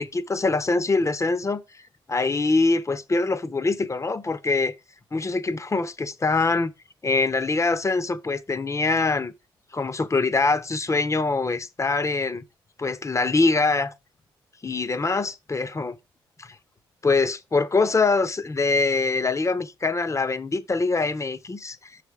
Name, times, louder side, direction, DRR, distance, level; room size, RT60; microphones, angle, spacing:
voice 1, 0.0-1.8 2.1-4.7 5.1-6.7 7.0-9.3 9.7-12.4 12.8-13.9 14.6-16.0 16.4-16.6 17.0-22.0, left 3 dB, 30° left, 0.8 m, -24 dB
6.4 x 5.0 x 4.6 m
hypercardioid pair, 45°, 10 cm